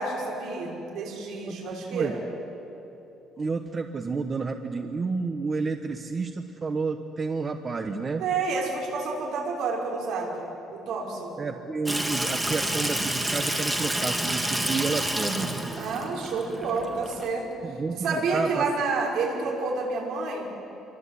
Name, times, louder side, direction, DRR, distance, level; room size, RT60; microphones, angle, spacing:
voice 1, 0.0-2.2 8.2-11.3 15.7-17.5 17.9-20.5, right 4 dB, 70° right, -1 dB, 6.1 m, -29 dB
voice 2, 3.4-8.2 11.4-15.5 17.6-18.7, right 4 dB, 25° right, 6 dB, 1.1 m, -30 dB
Water tap faucet / Sink (filling or washing), 11.9-17.3, right 1 dB, 10° right, 2.2 m, -29 dB
28.0 x 24.0 x 8.5 m, 3.0 s
cardioid pair, 145°, 0 cm